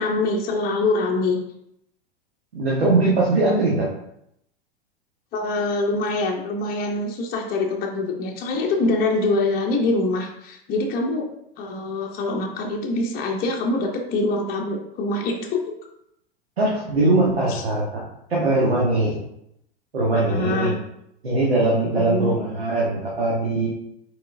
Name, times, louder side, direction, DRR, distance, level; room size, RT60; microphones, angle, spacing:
voice 1, 0.0-1.4 5.3-11.3 11.6-15.6 17.5-17.6 20.3-20.7 21.9-22.4, left 2 dB, 30° left, 0 dB, 0.8 m, -24 dB
voice 2, 2.5-3.9 16.6-18.0 18.3-19.1 19.9-20.7 21.2-23.7, right 2 dB, 85° right, -5 dB, 1.1 m, -21 dB
4.5 x 4.2 x 2.6 m, 0.78 s
figure-of-eight pair, 90°, 30 cm